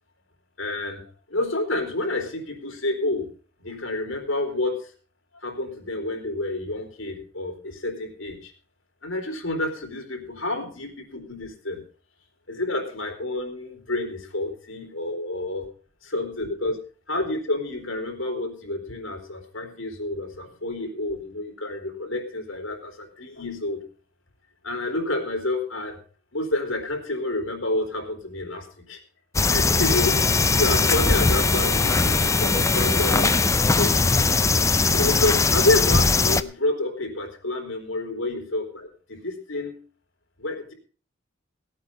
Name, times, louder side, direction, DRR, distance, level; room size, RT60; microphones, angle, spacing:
voice 1, 0.6-3.3 3.6-4.9 5.3-8.5 9.0-11.9 12.5-15.6 16.0-23.8 24.6-26.0 26.3-29.0 29.5-34.1 34.9-39.8 40.4-40.7, left 2 dB, 75° left, 4 dB, 3.9 m, -29 dB
sound 1, 29.3-36.4, left 3 dB, 15° left, 0.5 m, -20 dB
17.0 x 8.6 x 5.5 m, 0.42 s
head